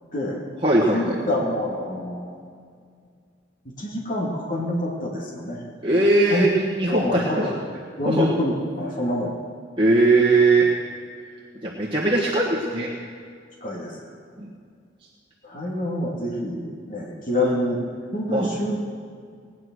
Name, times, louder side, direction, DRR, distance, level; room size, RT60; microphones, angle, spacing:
voice 1, 0.1-0.4 0.9-2.3 3.7-5.6 5.9-6.5 6.9-7.6 8.0-9.4 13.6-14.1 15.4-17.8 18.1-18.8, left 1 dB, 45° left, -2 dB, 2.4 m, -27 dB
voice 2, 0.6-1.2 5.8-7.5 8.0-8.3 9.8-10.7 11.6-12.9 14.4-14.5 18.3-18.5, right 2 dB, 25° right, -4 dB, 1.4 m, -20 dB
18.5 x 9.9 x 6.3 m, 2.1 s
head